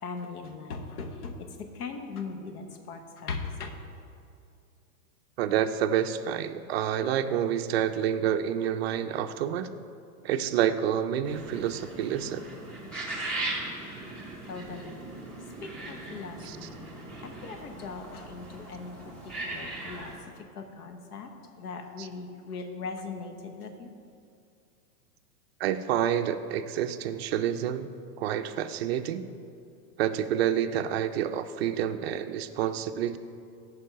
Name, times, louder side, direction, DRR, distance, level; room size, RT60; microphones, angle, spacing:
voice 1, 0.0-3.7 14.5-15.0 15.6-16.5 17.2-21.3 21.6-23.9, left 4 dB, 75° left, 6 dB, 1.2 m, -39 dB
voice 2, 5.4-9.7 10.2-12.4 16.4-16.6 22.0-22.1 25.6-27.9 28.2-29.2 30.0-33.2, right 10 dB, 45° right, 9 dB, 0.4 m, -28 dB
sound 1, 11.2-20.2, right 2 dB, ahead, 0.7 m, -39 dB
9.7 x 4.8 x 5.7 m, 2.4 s
hypercardioid pair, 150°, 46 cm